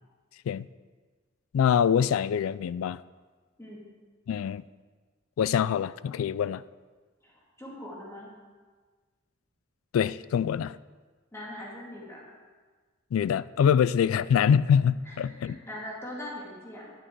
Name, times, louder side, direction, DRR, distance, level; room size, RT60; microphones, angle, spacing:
voice 1, 1.5-3.0 4.3-4.6 5.4-6.6 9.9-10.8 13.1-15.6, left 8 dB, 90° left, 0.3 m, -24 dB
voice 2, 7.2-8.3 11.3-12.2 15.0-15.2 15.4-16.9, left 1 dB, 15° left, 2.2 m, -41 dB
9.9 x 8.8 x 4.6 m
head